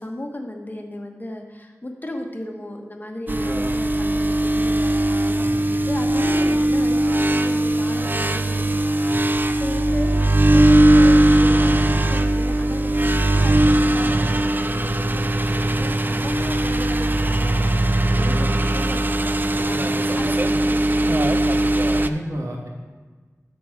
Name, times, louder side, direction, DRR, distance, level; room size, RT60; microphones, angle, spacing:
voice 1, 0.0-20.3 20.6-21.5, left 1 dB, 35° left, 2 dB, 1.1 m, -35 dB
sound 1, 3.3-22.1, right 1 dB, 35° right, 0.4 m, -19 dB
voice 2, 22.0-22.7, equal, 65° right, -1 dB, 1.7 m, -31 dB
12.5 x 4.6 x 4.6 m, 1.4 s
wide cardioid pair, 45°, 6 cm